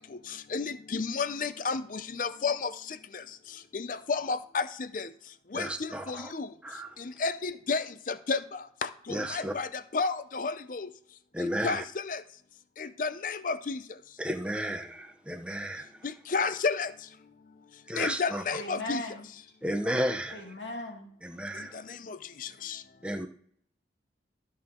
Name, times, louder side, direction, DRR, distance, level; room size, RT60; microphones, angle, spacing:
voice 1, 0.1-3.2 3.7-5.1 5.5-6.5 7.0-10.9 11.4-12.2 12.8-13.8 16.0-16.9 18.0-19.0 21.5-22.8, left 4 dB, 45° left, 13 dB, 0.5 m, -32 dB
voice 2, 5.5-6.3 6.6-7.0 9.1-9.5 11.3-11.8 14.2-16.0 17.9-18.4 19.6-20.4 21.2-21.8 23.0-23.3, equal, 5° right, 5 dB, 0.8 m, -33 dB
voice 3, 18.5-19.3 20.3-21.1, left 1 dB, 90° left, 0 dB, 2.3 m, -38 dB
13.0 x 6.2 x 3.7 m, 0.62 s
head